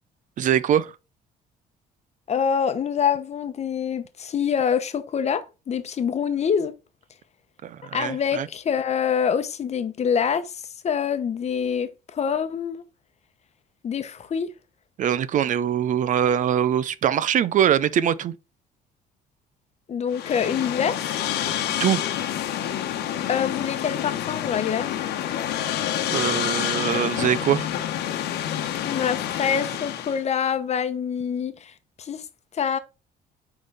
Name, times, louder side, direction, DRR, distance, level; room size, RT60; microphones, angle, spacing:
voice 1, 0.4-0.9 7.6-8.5 15.0-18.3 21.8-22.0 26.1-27.7, right 9 dB, 50° right, 0.5 m, -22 dB
voice 2, 2.3-6.7 7.9-12.8 13.8-14.5 19.9-21.0 23.3-24.9 28.8-31.7 32.0-32.2 32.5-32.8, left 7 dB, 40° left, 0.9 m, -25 dB
sound 1, 20.1-30.2, left 11 dB, 80° left, 1.2 m, -28 dB
9.3 x 3.9 x 3.4 m
cardioid pair, 110°, 17 cm